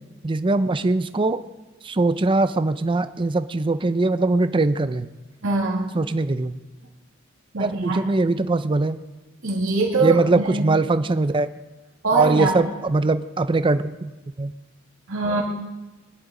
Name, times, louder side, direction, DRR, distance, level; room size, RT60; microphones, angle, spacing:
voice 1, 0.2-1.4 1.8-5.1 5.9-6.6 7.6-9.0 10.0-11.5 12.1-14.1 14.4-14.5, right 2 dB, 25° right, 11 dB, 0.5 m, -21 dB
voice 2, 5.4-5.9 7.5-8.0 9.4-10.8 12.0-12.6 15.1-15.4, right 3 dB, 85° right, -4 dB, 2.4 m, -23 dB
21.5 x 11.0 x 3.8 m, 1.1 s
head